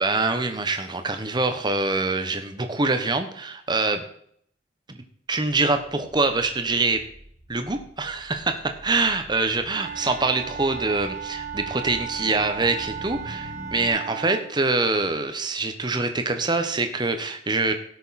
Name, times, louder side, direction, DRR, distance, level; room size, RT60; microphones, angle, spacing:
voice 1, 0.0-4.0 4.9-7.0 7.5-17.7, right 3 dB, 25° right, 7 dB, 1.2 m, -25 dB
sound 1, 6.0-13.9, equal, 70° left, 3.7 m, -45 dB
Wind instrument woodwind instrument, 9.7-14.5, right 7 dB, 45° right, 1.5 m, -35 dB
17.0 x 6.5 x 4.3 m, 0.66 s
head